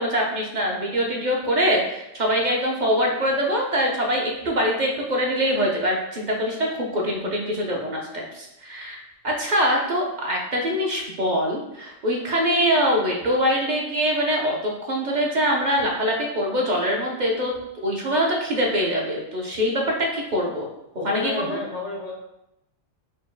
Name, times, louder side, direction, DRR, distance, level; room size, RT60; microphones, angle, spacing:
voice 1, 0.0-9.0 9.2-20.7 21.0-21.6, equal, 45° right, -1 dB, 0.7 m, -24 dB
voice 2, 21.0-22.1, left 4 dB, 50° left, 0 dB, 0.5 m, -30 dB
4.4 x 2.1 x 4.5 m, 0.87 s
omnidirectional pair, 1.2 m